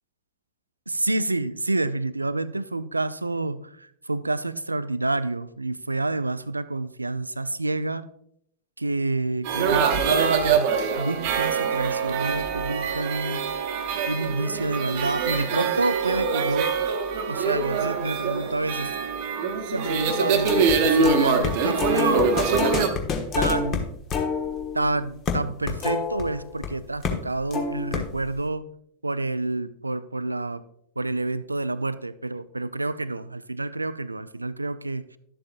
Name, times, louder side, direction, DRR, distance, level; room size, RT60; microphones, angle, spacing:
voice 1, 0.9-8.1 8.8-10.7 11.0-16.7 17.3-18.9 19.7-22.2 23.4-23.9 24.7-28.7 29.0-30.6 31.0-35.2, right 2 dB, 80° right, 16 dB, 0.3 m, -28 dB
sound 1, 9.4-22.9, right 5 dB, 50° right, 0.9 m, -24 dB
sound 2, 20.5-20.7 21.0-26.7 27.0-27.2 27.5-28.3, left 5 dB, 30° left, 1.3 m, -28 dB
11.5 x 7.7 x 2.5 m, 0.71 s
figure-of-eight pair, 90°, 0 cm